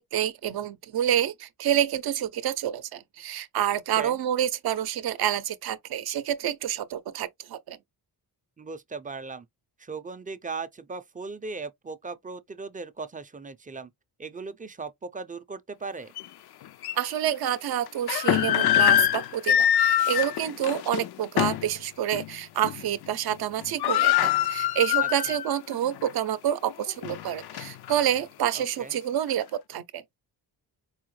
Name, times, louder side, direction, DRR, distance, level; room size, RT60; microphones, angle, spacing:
voice 1, 0.0-7.8 17.0-30.0, right 10 dB, 70° right, 0.6 m, -28 dB
voice 2, 8.6-9.5 9.8-13.9 14.2-16.1 25.0-25.4 28.5-29.0, right 4 dB, 20° right, 0.4 m, -38 dB
sound 1, 16.2-16.3 16.8-16.9 17.9-21.7 22.1-22.3 22.6-23.1 23.3-23.4 23.6-25.6 26.0-26.1 26.7-28.0, left 11 dB, 70° left, 0.5 m, -24 dB
4.8 x 2.1 x 3.0 m
cardioid pair, 95°, 39 cm